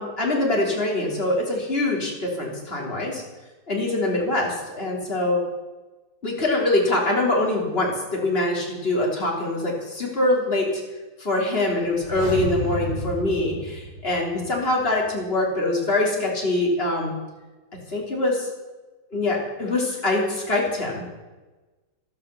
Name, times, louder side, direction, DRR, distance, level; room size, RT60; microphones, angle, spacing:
voice 1, 0.0-3.2 3.7-5.4 6.2-10.7 11.2-17.1 17.9-18.5 19.1-21.0, left 2 dB, 30° left, -1 dB, 3.5 m, -24 dB
sound 1, 11.9-14.7 15.0-15.1, right 1 dB, 80° right, 3.7 m, -32 dB
13.0 x 12.5 x 6.9 m, 1.2 s
omnidirectional pair, 2.0 m